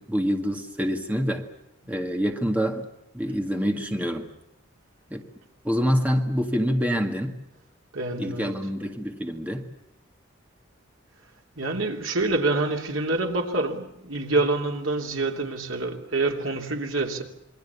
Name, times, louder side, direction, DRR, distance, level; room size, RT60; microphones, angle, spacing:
voice 1, 0.0-1.4 1.9-2.9 3.1-4.3 5.1-5.3 5.6-7.3 8.2-9.7, equal, 5° right, 1.9 m, -26 dB
voice 2, 7.9-8.6 11.6-17.2, right 2 dB, 80° right, 3.1 m, -26 dB
27.5 x 23.0 x 7.1 m
head